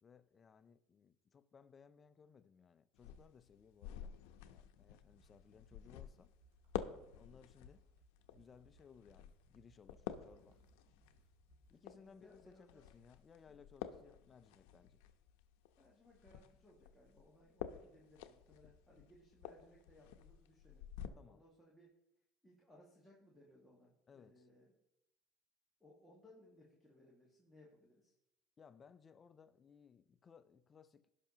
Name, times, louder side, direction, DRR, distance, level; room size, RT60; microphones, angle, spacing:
voice 1, 0.0-4.2 4.4-6.3 7.0-7.9 8.3-10.6 11.7-15.0 21.2-21.4 24.1-24.5 28.6-31.1, left 6 dB, 25° left, 0.4 m, -63 dB
sound 1, 2.9-21.1, left 10 dB, 80° left, 0.7 m, -51 dB
sound 2, 5.1-11.8, right 3 dB, 85° right, 3.0 m, -71 dB
voice 2, 11.7-13.0 13.5-13.7 15.8-21.9 22.4-24.8 25.8-28.1, left 1 dB, 5° left, 1.9 m, -65 dB
17.0 x 5.8 x 2.9 m
supercardioid pair, 125°, 0 cm